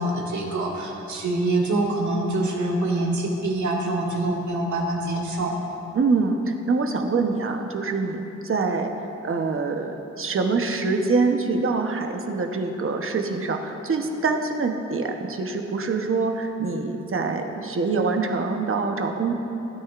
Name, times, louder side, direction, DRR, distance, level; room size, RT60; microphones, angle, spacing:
voice 1, 0.0-5.6, right 2 dB, 75° right, -3 dB, 1.9 m, -25 dB
voice 2, 5.9-8.9 9.2-19.3, right 4 dB, 45° right, 4 dB, 0.9 m, -25 dB
16.5 x 9.7 x 2.5 m, 3.0 s
wide cardioid pair, 105°, 29 cm